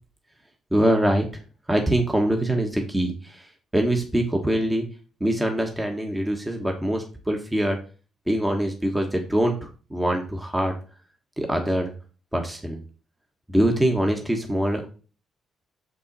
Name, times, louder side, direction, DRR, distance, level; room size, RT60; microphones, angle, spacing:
voice 1, 0.7-1.2 1.7-3.5 3.7-4.8 5.2-7.8 8.3-9.6 9.9-10.7 11.4-11.9 12.3-12.8 13.5-14.9, right 1 dB, 10° right, 2 dB, 1.3 m, -23 dB
6.4 x 5.3 x 4.1 m, 0.36 s
cardioid pair, 90°, 0 cm